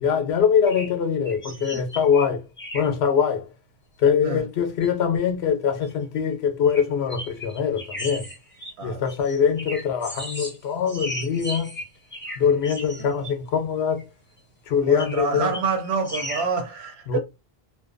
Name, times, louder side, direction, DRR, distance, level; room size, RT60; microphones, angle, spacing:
voice 1, 0.0-2.4 2.7-3.4 4.0-8.2 8.8-11.7 12.4-14.0 14.7-15.5 17.1-17.2, left 7 dB, 85° left, 0.9 m, -23 dB
sound 1, 0.7-0.9 1.2-2.2 2.6-2.9 4.1-4.2 4.6-4.9 5.8-5.9 6.7-6.8 7.1-10.6 10.9-13.3 14.0-14.1 15.0-15.3 15.5-16.5, left 1 dB, 10° left, 0.9 m, -35 dB
voice 2, 14.8-17.2, right 5 dB, 85° right, 0.9 m, -27 dB
2.6 x 2.1 x 2.5 m
omnidirectional pair, 1.0 m